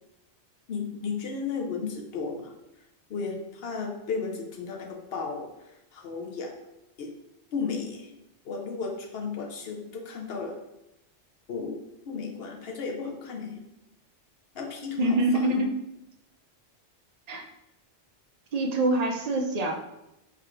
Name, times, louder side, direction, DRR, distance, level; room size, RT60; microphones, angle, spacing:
voice 1, 0.7-2.5 3.1-6.5 7.0-7.1 7.5-8.1 8.4-10.6 11.5-13.6 14.5-15.7, left 5 dB, 65° left, 1 dB, 0.8 m, -34 dB
voice 2, 15.0-15.7 17.3-17.4 18.5-19.7, right 1 dB, 50° right, 2 dB, 0.5 m, -25 dB
3.5 x 2.4 x 4.4 m, 0.89 s
omnidirectional pair, 1.2 m